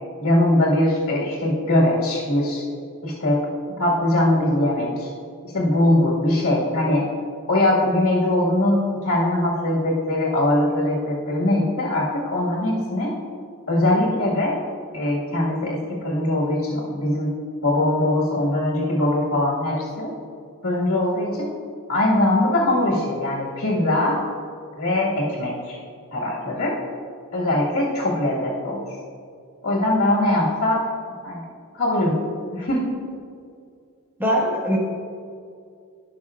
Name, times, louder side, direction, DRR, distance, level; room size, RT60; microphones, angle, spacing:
voice 1, 0.2-2.6 3.0-3.4 3.8-5.1 5.5-7.1 7.5-13.2 13.7-14.6 14.9-17.3 17.6-20.1 20.6-21.5 21.9-24.2 24.8-25.8 26.1-26.8 27.3-28.8 29.6-30.8 31.2-31.4 31.7-32.2 32.5-32.9, left 1 dB, 75° left, -5 dB, 1.8 m, -21 dB
voice 2, 34.2-34.8, equal, 10° right, -4 dB, 1.5 m, -21 dB
16.0 x 5.9 x 2.4 m, 2.3 s
head